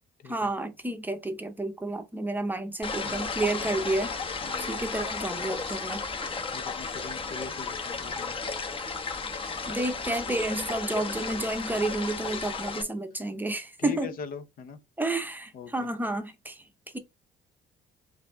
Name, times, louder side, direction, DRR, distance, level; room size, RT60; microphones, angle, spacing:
voice 1, 0.3-4.1 4.6-6.0 9.7-14.2 15.0-16.6, right 2 dB, 10° right, 0.7 m, -30 dB
sound 1, 2.8-12.8, left 4 dB, 30° left, 0.9 m, -34 dB
voice 2, 3.0-3.4 4.4-4.8 6.5-8.4 13.8-14.8 15.5-15.7, left 6 dB, 60° left, 0.8 m, -41 dB
5.1 x 2.6 x 3.5 m
cardioid pair, 110°, 17 cm